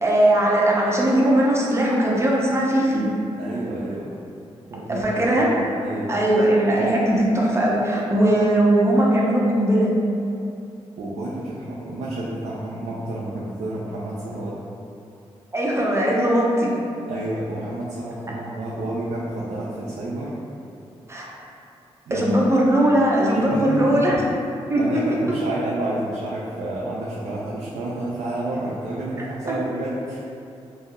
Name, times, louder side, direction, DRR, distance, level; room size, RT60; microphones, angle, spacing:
voice 1, 0.0-3.1 4.9-5.5 6.1-9.9 15.5-16.7 21.1-21.3 22.1-24.2 24.7-24.8 29.5-29.6, right 1 dB, 25° right, -4 dB, 0.7 m, -19 dB
voice 2, 3.4-4.1 4.7-6.1 11.0-14.5 17.1-20.4 22.1-22.4 23.3-24.2 24.8-30.2, right 1 dB, 80° right, -7 dB, 0.4 m, -30 dB
2.6 x 2.0 x 3.6 m, 2.7 s
supercardioid pair, 50°, 12 cm